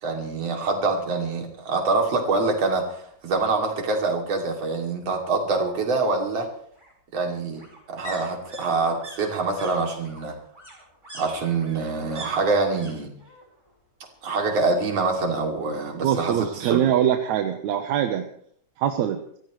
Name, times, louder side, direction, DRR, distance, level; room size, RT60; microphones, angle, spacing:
voice 1, 0.0-6.5 7.1-7.6 7.9-10.3 11.1-13.1 14.2-16.8, right 3 dB, 55° right, 2 dB, 3.8 m, -25 dB
sound 1, 3.1-3.9 5.1-12.9 13.2-13.8 14.0-15.1 15.4-15.5, right 1 dB, 10° right, 4.6 m, -45 dB
voice 2, 16.0-18.3 18.8-19.2, right 10 dB, 75° right, 6 dB, 2.2 m, -23 dB
25.0 x 15.5 x 3.2 m, 0.62 s
omnidirectional pair, 3.5 m